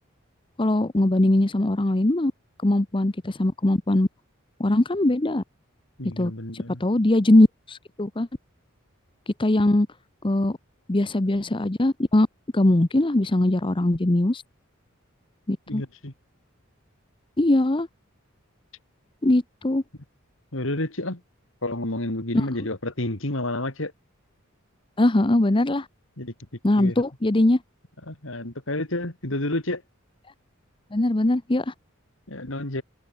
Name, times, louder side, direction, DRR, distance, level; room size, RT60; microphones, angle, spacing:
voice 1, 0.6-2.3 2.6-4.1 4.6-5.4 6.2-8.3 9.4-9.9 10.2-10.6 10.9-12.3 12.5-14.4 15.5-15.8 17.4-17.9 19.2-19.8 25.0-25.9 26.6-27.6 30.9-31.7, left 1 dB, 25° left, 0.8 m, -21 dB
voice 2, 6.0-6.8 15.7-16.1 20.5-21.2 21.6-23.9 26.2-26.3 26.8-26.9 28.1-29.8 32.3-32.8, left 1 dB, 65° left, 3.2 m, -30 dB
head